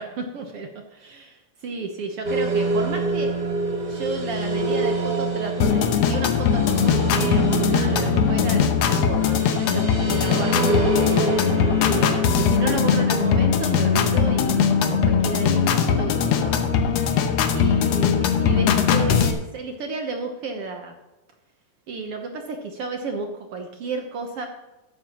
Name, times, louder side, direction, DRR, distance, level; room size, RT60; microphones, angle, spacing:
voice 1, 0.0-3.3 3.9-10.9 11.2-17.2 17.5-21.0 21.9-24.5, right 4 dB, 60° right, 4 dB, 1.7 m, -32 dB
sound 1, 2.2-18.4, right 3 dB, 45° right, 0.5 m, -27 dB
sound 2, 5.6-19.3, left 7 dB, 70° left, 1.9 m, -20 dB
14.5 x 11.5 x 3.0 m, 1.0 s
omnidirectional pair, 3.5 m